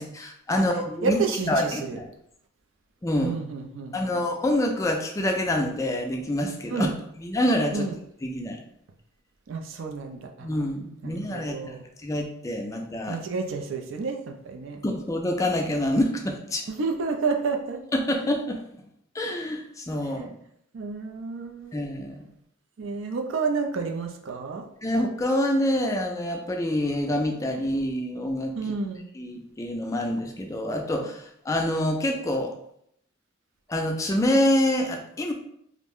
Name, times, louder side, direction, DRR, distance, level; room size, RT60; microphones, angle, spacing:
voice 1, 0.0-1.2 1.5-2.0 3.0-3.4 3.9-6.9 7.2-7.9 8.2-8.6 10.4-13.2 14.8-16.6 17.9-18.6 19.1-20.4 21.7-22.2 24.8-28.5 29.2-32.5 33.7-35.3, left 1 dB, 15° left, 2 dB, 0.3 m, -26 dB
voice 2, 1.0-2.0 3.2-4.0 6.7-6.9 7.7-8.0 9.5-10.5 11.0-11.8 13.1-14.8 16.7-17.8 20.0-20.2 20.7-21.7 22.8-24.7 28.6-29.1, right 4 dB, 65° right, 3 dB, 0.4 m, -30 dB
2.4 x 2.1 x 3.5 m, 0.71 s
head